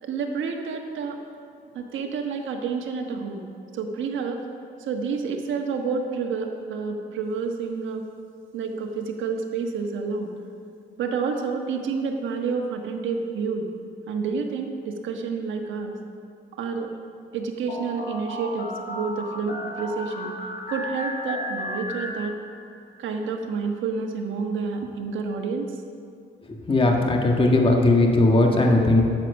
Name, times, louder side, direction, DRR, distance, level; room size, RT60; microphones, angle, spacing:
voice 1, 0.0-1.2 1.7-3.4 3.7-4.4 4.8-8.1 8.5-10.3 11.0-13.7 14.1-16.0 16.6-16.9 17.3-20.3 20.7-22.3 23.0-25.7, right 5 dB, 75° right, 3 dB, 1.3 m, -29 dB
sound 1, 17.7-22.8, left 1 dB, 50° left, 2.1 m, -34 dB
voice 2, 26.7-29.0, left 2 dB, 25° left, 1 dB, 1.5 m, -18 dB
9.9 x 7.5 x 6.5 m, 2.4 s
cardioid pair, 90°, 20 cm